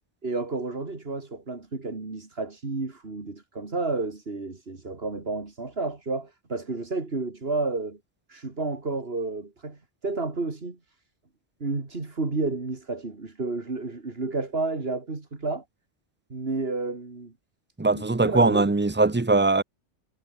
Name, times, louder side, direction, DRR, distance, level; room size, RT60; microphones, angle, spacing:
voice 1, 0.2-8.0 8.3-10.8 11.6-15.6 16.3-17.3 17.9-18.7, right 3 dB, 55° right, 3.0 m, -31 dB
voice 2, 17.8-19.6, right 3 dB, 15° right, 0.4 m, -21 dB
omnidirectional pair, 1.2 m